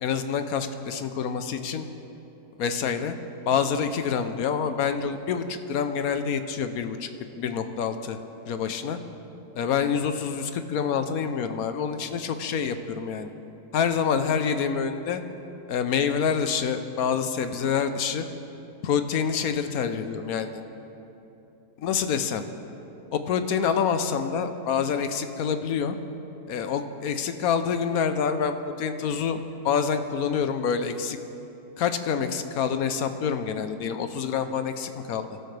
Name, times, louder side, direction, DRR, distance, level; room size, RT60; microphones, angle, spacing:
voice 1, 0.0-1.9 2.6-3.1 3.5-7.1 7.3-8.2 8.5-9.0 9.6-13.3 13.7-15.2 15.7-18.3 18.8-20.6 21.8-22.4 23.1-26.0 26.5-31.2 31.8-35.3, left 7 dB, 70° left, 9 dB, 1.2 m, -27 dB
24.0 x 12.5 x 3.4 m, 3.0 s
omnidirectional pair, 1.7 m